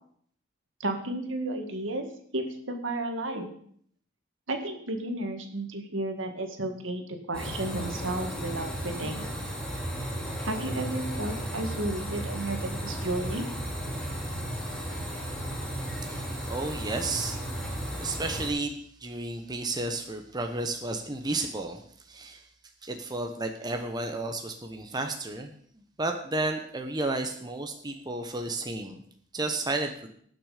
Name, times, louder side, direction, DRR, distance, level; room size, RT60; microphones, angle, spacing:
voice 1, 0.8-2.1 2.3-3.5 4.5-9.2 10.4-13.5, right 1 dB, 75° right, 5 dB, 1.9 m, -33 dB
sound 1, 7.3-18.5, right 1 dB, 5° left, 2.6 m, -34 dB
voice 2, 16.5-17.4 18.0-21.8 22.1-22.4 22.8-29.0 29.3-30.1, right 2 dB, 20° right, 4 dB, 1.0 m, -32 dB
19.0 x 6.3 x 5.1 m, 0.63 s
head